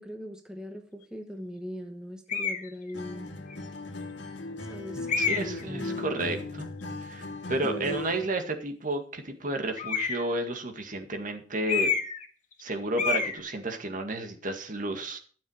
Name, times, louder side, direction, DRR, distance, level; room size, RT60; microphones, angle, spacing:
voice 1, 0.0-3.3 4.6-5.1 5.4-6.2 7.6-8.0, left 1 dB, 5° right, 4 dB, 1.1 m, -40 dB
sound 1, 2.3-2.7 3.5-3.6 5.1-5.6 9.8-10.3 11.7-12.3 12.5-12.7 13.0-13.4, left 6 dB, 45° left, 1.7 m, -28 dB
Acoustic guitar, 2.9-8.3, left 2 dB, 80° left, 1.9 m, -38 dB
voice 2, 4.9-6.7 7.0-11.9 12.6-15.2, right 2 dB, 45° right, 5 dB, 2.0 m, -32 dB
12.5 x 7.3 x 6.4 m, 0.42 s
head